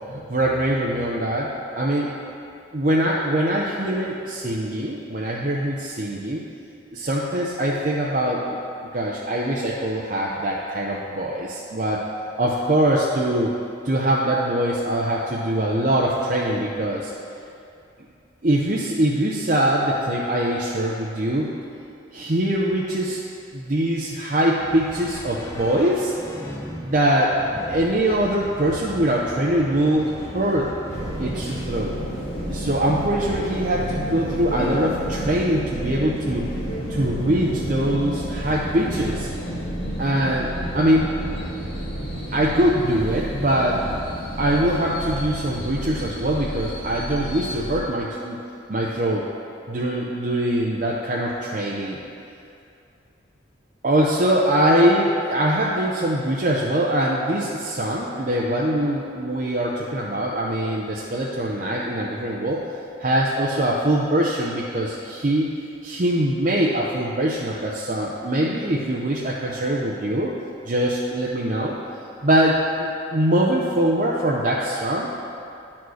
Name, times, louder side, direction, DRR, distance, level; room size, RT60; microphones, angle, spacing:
voice 1, 0.1-2.1 2.7-6.4 6.9-8.6 8.9-12.1 12.4-13.6 13.8-17.1 18.4-21.5 22.1-23.2 23.5-26.1 26.8-27.4 27.7-30.7 31.2-32.0 32.5-36.5 36.9-39.3 40.0-41.1 42.3-43.8 44.4-48.4 48.7-49.3 49.7-52.0 53.8-62.6 63.0-65.5 65.8-70.3 70.7-71.8 72.2-75.2, right 1 dB, 40° right, -4 dB, 0.6 m, -23 dB
sound 1, 24.6-31.5, equal, 15° left, 0.5 m, -37 dB
sound 2, 30.9-47.8, equal, 60° left, 1.9 m, -30 dB
9.5 x 4.4 x 6.3 m, 2.6 s
head